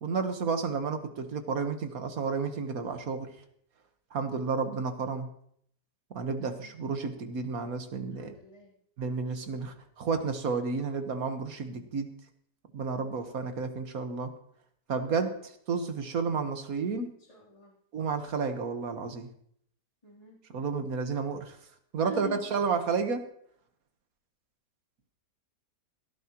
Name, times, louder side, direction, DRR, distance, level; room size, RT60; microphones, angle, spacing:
voice 1, 0.0-3.3 4.1-5.3 6.1-8.3 9.0-12.1 12.7-14.3 14.9-15.3 15.7-17.1 17.9-19.3 20.5-21.6 21.9-23.3, right 5 dB, 60° right, 7 dB, 1.7 m, -31 dB
voice 2, 6.4-6.8 8.1-8.7 15.0-15.4 17.2-17.7 20.0-20.4 22.0-22.6, left 2 dB, 20° left, -4 dB, 3.5 m, -45 dB
17.5 x 13.5 x 3.0 m, 0.67 s
omnidirectional pair, 1.8 m